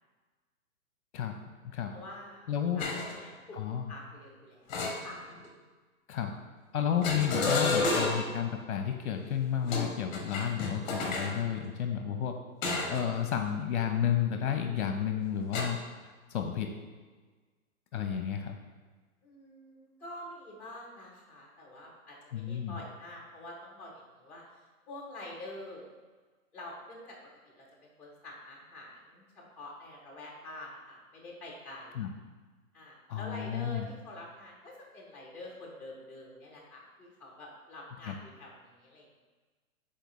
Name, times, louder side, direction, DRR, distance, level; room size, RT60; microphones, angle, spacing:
voice 1, 1.9-3.6 3.9-5.2 19.2-24.4 24.9-25.9 26.5-27.2 27.4-27.7 28.0-32.0 32.7-39.2, left 1 dB, 5° left, -5 dB, 1.0 m, -47 dB
voice 2, 2.5-2.8 3.5-3.9 6.1-6.3 6.7-12.3 12.9-15.8 16.3-16.7 17.9-18.6 22.3-22.8 31.9-32.1 33.1-33.9 38.1-38.2, left 9 dB, 55° left, 4 dB, 0.8 m, -31 dB
sound 1, 2.8-3.2 4.7-5.5 7.0-8.4 9.6-11.4 12.6-13.1 13.5-13.7 15.5-15.6, left 3 dB, 30° left, 1.2 m, -31 dB
9.0 x 4.3 x 3.1 m, 1.4 s
hypercardioid pair, 150°, 42 cm